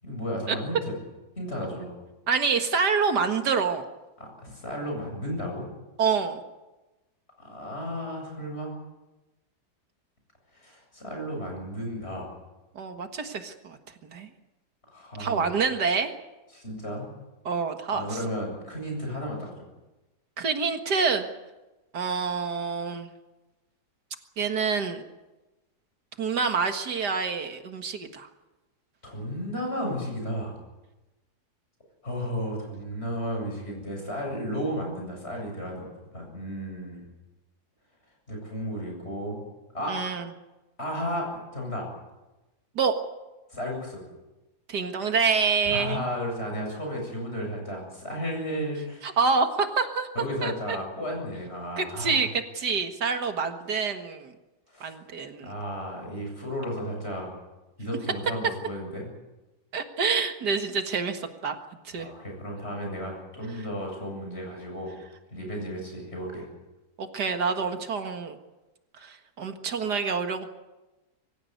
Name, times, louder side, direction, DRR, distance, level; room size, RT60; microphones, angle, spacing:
voice 1, 0.0-1.0 1.4-1.9 4.2-5.7 7.4-8.7 10.5-12.3 14.9-15.5 16.5-17.1 17.9-19.7 29.0-30.6 32.0-35.9 36.1-37.1 38.3-39.4 39.7-39.9 40.8-41.9 43.5-44.0 45.7-49.2 50.1-52.2 54.7-54.9 55.4-57.3 57.8-59.1 62.0-64.9 65.3-66.5, equal, 40° left, 1 dB, 8.2 m, -33 dB
voice 2, 2.3-3.8 6.0-6.4 12.8-13.8 14.1-14.3 15.2-16.1 17.5-18.1 20.4-21.3 21.9-23.1 24.4-25.0 26.2-28.3 39.9-40.3 42.8-42.9 44.7-46.0 49.0-50.1 50.4-50.8 51.8-52.3 52.5-54.3 54.8-55.5 59.7-61.6 61.8-62.1 67.0-68.4 69.0-70.5, right 5 dB, 80° right, 6 dB, 2.3 m, -27 dB
24.5 x 15.5 x 9.4 m, 1.1 s
omnidirectional pair, 1.7 m